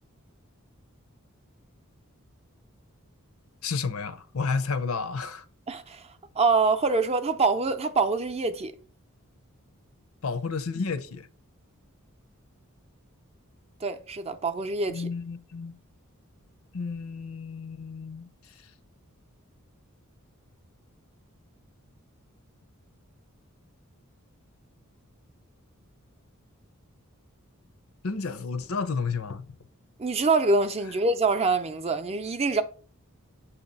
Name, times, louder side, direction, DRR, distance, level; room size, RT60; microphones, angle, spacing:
voice 1, 3.6-5.5 10.2-11.3 14.9-15.7 16.7-18.3 28.0-29.6, left 4 dB, 75° left, 0.6 m, -31 dB
voice 2, 5.7-6.0 6.4-8.7 13.8-15.1 30.0-32.6, right 3 dB, 30° right, 0.5 m, -25 dB
7.8 x 2.9 x 5.3 m
head